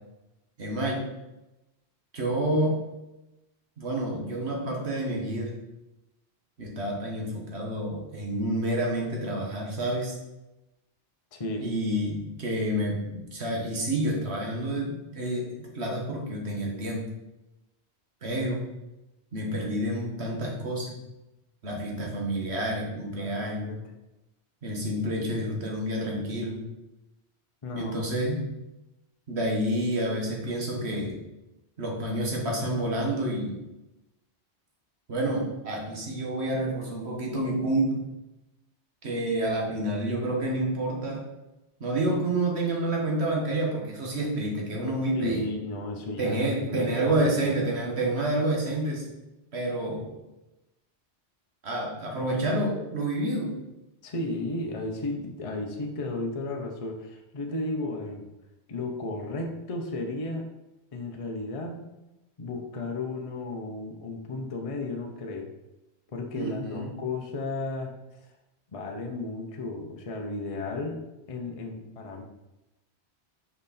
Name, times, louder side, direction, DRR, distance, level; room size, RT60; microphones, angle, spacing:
voice 1, 0.6-1.0 2.1-2.8 3.8-5.6 6.6-10.2 11.6-17.1 18.2-18.6 19.3-21.0 21.6-23.8 24.6-26.6 27.8-28.4 29.3-31.2 31.8-33.6 35.1-38.1 39.0-41.2 41.8-45.5 46.2-49.1 49.5-50.1 51.6-53.5 66.3-66.9, right 1 dB, 75° right, -1 dB, 1.7 m, -29 dB
voice 2, 11.3-11.7 23.2-23.8 27.6-28.1 45.1-47.6 54.0-58.2 58.7-60.5 60.9-61.8 62.4-65.5 66.1-67.9 68.7-71.0 71.3-72.2, left 2 dB, 35° left, 2 dB, 0.8 m, -34 dB
5.9 x 5.0 x 4.2 m, 0.99 s
omnidirectional pair, 1.1 m